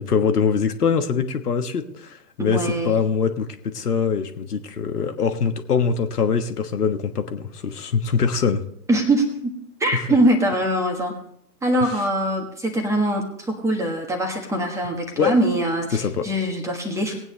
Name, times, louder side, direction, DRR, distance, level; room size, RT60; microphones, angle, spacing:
voice 1, 0.0-8.6 9.9-10.0 11.8-12.1 15.1-15.3 15.9-16.3, left 6 dB, 70° left, 7 dB, 1.4 m, -23 dB
voice 2, 2.4-2.9 8.9-9.3 9.8-11.1 11.6-17.2, right 1 dB, 5° right, 2 dB, 1.4 m, -22 dB
19.0 x 9.1 x 3.3 m, 0.71 s
figure-of-eight pair, 130°, 48 cm